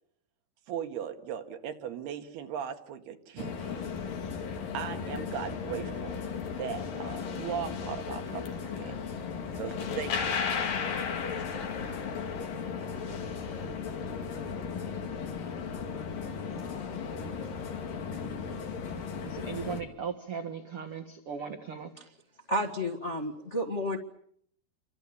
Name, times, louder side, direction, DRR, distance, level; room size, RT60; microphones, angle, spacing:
voice 1, 0.7-4.0 4.7-6.2 6.6-9.0 9.6-10.4, right 8 dB, 80° right, 3.9 m, -38 dB
sound 1, 3.4-19.8, left 6 dB, 60° left, 4.0 m, -35 dB
voice 2, 19.2-21.9, right 6 dB, 50° right, 1.9 m, -38 dB
voice 3, 22.5-24.0, equal, 80° left, 0.6 m, -31 dB
29.5 x 24.5 x 7.1 m
omnidirectional pair, 4.5 m